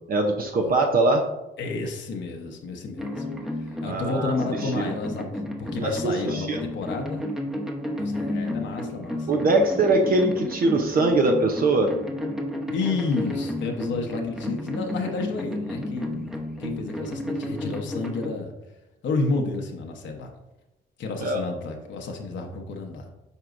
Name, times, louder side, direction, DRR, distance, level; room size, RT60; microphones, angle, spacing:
voice 1, 0.1-1.3 3.8-4.3 4.6-4.9 5.8-6.6 9.3-11.9 21.2-21.4, right 2 dB, 45° right, 2 dB, 0.7 m, -22 dB
voice 2, 1.6-3.2 3.6-5.3 5.6-7.2 8.0-9.3 12.7-18.5 19.0-20.3 21.0-23.1, left 3 dB, 70° left, 2 dB, 1.0 m, -30 dB
sound 1, 3.0-18.3, left 1 dB, ahead, 0.9 m, -32 dB
8.0 x 4.7 x 2.6 m, 0.97 s
cardioid pair, 90°, 20 cm